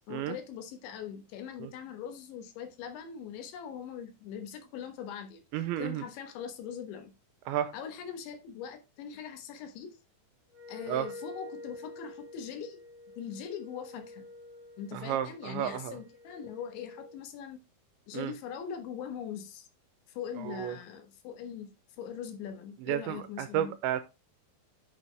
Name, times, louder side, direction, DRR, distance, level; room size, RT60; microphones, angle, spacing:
voice 1, 0.1-7.1 7.7-9.9 10.7-12.8 13.2-14.3 14.8-17.6 18.1-19.7 20.1-23.7, left 8 dB, 75° left, 3.4 m, -41 dB
voice 2, 5.5-6.0 7.5-7.7 10.9-11.1 14.9-16.0 18.1-18.3 20.5-20.8 22.9-24.0, right 11 dB, 80° right, 2.8 m, -32 dB
Wind instrument woodwind instrument, 10.5-17.2, left 2 dB, 50° right, 1.2 m, -48 dB
8.8 x 6.3 x 3.4 m
omnidirectional pair, 5.6 m